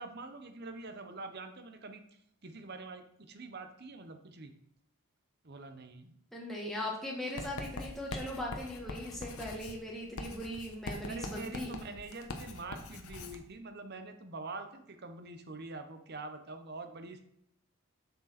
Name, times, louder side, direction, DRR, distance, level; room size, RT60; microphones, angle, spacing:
voice 1, 0.0-2.0 2.4-4.5 5.4-6.1 11.1-17.2, right 3 dB, 45° right, 7 dB, 0.9 m, -45 dB
voice 2, 6.3-11.7, left 1 dB, ahead, -3 dB, 1.3 m, -39 dB
Writing, 7.4-13.4, left 2 dB, 80° left, 1.0 m, -43 dB
6.8 x 6.6 x 4.2 m, 0.76 s
head